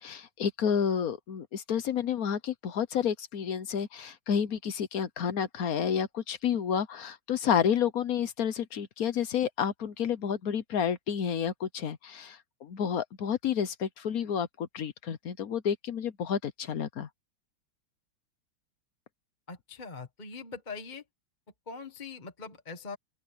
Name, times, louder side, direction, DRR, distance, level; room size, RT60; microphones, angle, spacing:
voice 1, 0.0-17.1, left 8 dB, 55° left, 1.1 m, -30 dB
voice 2, 19.5-21.0 21.7-23.0, left 4 dB, 25° left, 1.4 m, -42 dB
open air
omnidirectional pair, 2.3 m